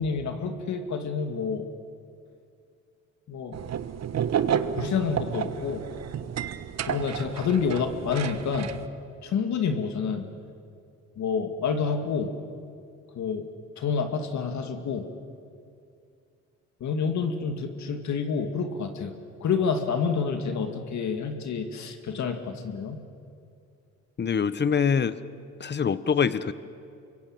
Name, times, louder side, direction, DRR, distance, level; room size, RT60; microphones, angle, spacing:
voice 1, 0.0-1.7 3.3-3.6 4.8-5.8 6.8-8.7 9.2-10.3 11.2-12.3 13.1-13.4 13.8-15.1 16.8-19.1 19.4-23.0, left 5 dB, 70° left, 6 dB, 2.4 m, -28 dB
sound 1, 3.5-8.9, right 8 dB, 60° right, 1.2 m, -31 dB
voice 2, 24.2-25.2 25.6-26.5, left 6 dB, 35° left, 15 dB, 1.1 m, -24 dB
27.0 x 23.0 x 8.9 m, 2.5 s
cardioid pair, 90°, 30 cm